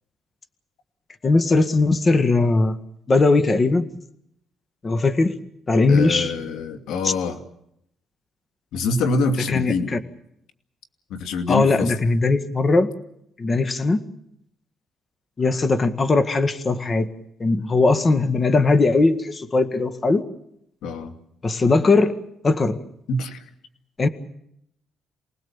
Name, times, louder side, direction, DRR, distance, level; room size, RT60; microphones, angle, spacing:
voice 1, 1.2-2.8 3.1-3.9 4.8-5.4 5.7-6.3 7.0-7.1 9.5-10.0 11.5-12.9 13.4-14.0 15.4-17.1 17.4-20.2 21.4-22.2 22.4-22.8 24.0-24.1, left 3 dB, 35° left, 9 dB, 1.9 m, -19 dB
voice 2, 5.9-7.4 8.7-9.9 11.1-11.9 20.8-21.1 23.1-23.4, left 3 dB, 85° left, 6 dB, 2.4 m, -25 dB
28.5 x 19.5 x 7.3 m, 0.78 s
cardioid pair, 90°, 0 cm